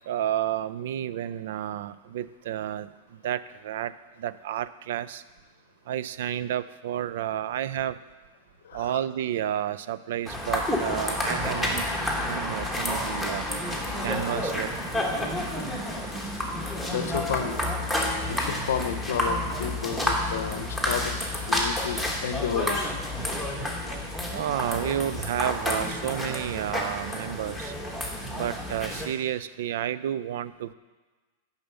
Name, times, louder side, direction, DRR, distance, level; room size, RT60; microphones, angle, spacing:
voice 1, 0.1-3.9 4.2-5.2 5.9-8.0 8.7-11.8 12.1-13.5 14.0-14.7 20.4-20.5 21.5-21.6 24.3-27.7 28.3-30.7, right 11 dB, 65° right, 16 dB, 0.3 m, -31 dB
voice 2, 8.6-9.0 15.0-15.3 15.8-15.9 16.9-17.6 18.3-23.0, left 8 dB, 85° left, 9 dB, 0.7 m, -32 dB
sound 1, 10.3-29.1, left 1 dB, ahead, 1.0 m, -30 dB
6.9 x 5.5 x 6.8 m, 1.3 s
supercardioid pair, 160°, 0 cm